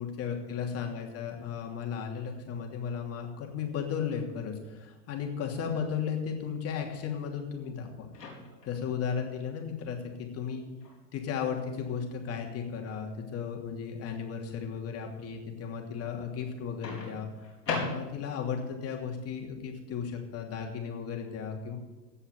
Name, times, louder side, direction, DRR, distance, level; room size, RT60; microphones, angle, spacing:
voice 1, 0.0-8.1 8.7-10.6 11.1-17.3 17.8-21.8, left 7 dB, 30° left, 1 dB, 2.9 m, -35 dB
Microwave oven, 8.1-8.8 10.8-11.0 16.8-18.4, left 4 dB, 90° left, 4.8 m, -36 dB
16.5 x 5.6 x 9.6 m, 1.2 s
hypercardioid pair, 115°, 48 cm